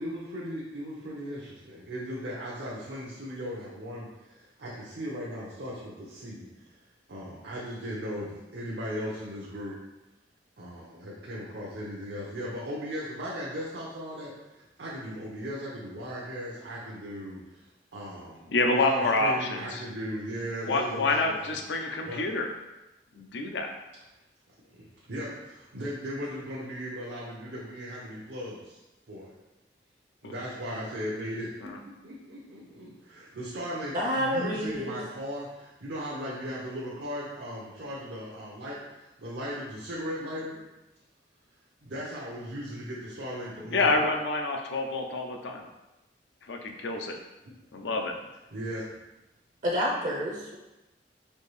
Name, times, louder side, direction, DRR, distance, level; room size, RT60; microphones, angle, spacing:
voice 1, 0.0-6.8 7.1-9.8 10.6-17.7 17.9-21.6 22.0-22.2 24.7-28.8 29.1-29.4 30.2-40.6 41.8-43.9 48.5-48.8, equal, 80° right, -5 dB, 0.7 m, -37 dB
voice 2, 18.5-19.8 20.6-22.5 23.1-23.7 30.2-30.3 31.6-31.8 43.7-45.6 46.5-47.2 47.7-48.1, left 2 dB, 90° left, 3 dB, 0.5 m, -27 dB
voice 3, 33.9-35.0 49.6-50.6, equal, 45° right, -2 dB, 0.5 m, -29 dB
4.4 x 2.6 x 3.2 m, 1.0 s
head